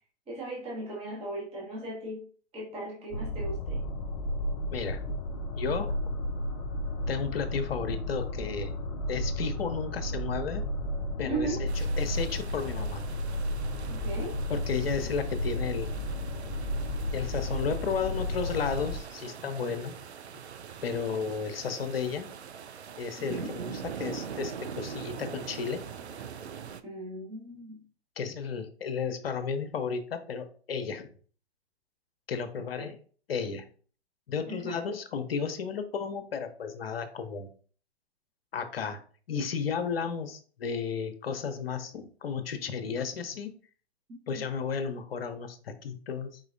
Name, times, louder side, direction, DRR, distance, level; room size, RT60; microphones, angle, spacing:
voice 1, 0.3-2.3 2.5-3.8 11.3-11.6 13.9-14.4 23.2-23.5 26.8-27.8 32.8-32.9 34.5-34.8 44.3-44.4, right 2 dB, 20° right, 1.3 m, -37 dB
sound 1, 3.1-19.0, left 1 dB, 25° left, 0.3 m, -33 dB
voice 2, 4.7-5.1 5.6-6.0 7.1-8.7 9.1-10.6 11.2-13.0 14.5-15.9 17.1-20.0 20.8-22.3 23.0-25.9 28.2-31.1 32.3-32.9 33.3-33.6 34.3-37.5 38.5-39.0 39.3-43.6 44.3-46.4, left 6 dB, 60° left, 0.8 m, -33 dB
sound 2, 11.7-26.8, right 7 dB, 80° right, 0.5 m, -43 dB
4.8 x 3.8 x 2.6 m
figure-of-eight pair, 120°, 33 cm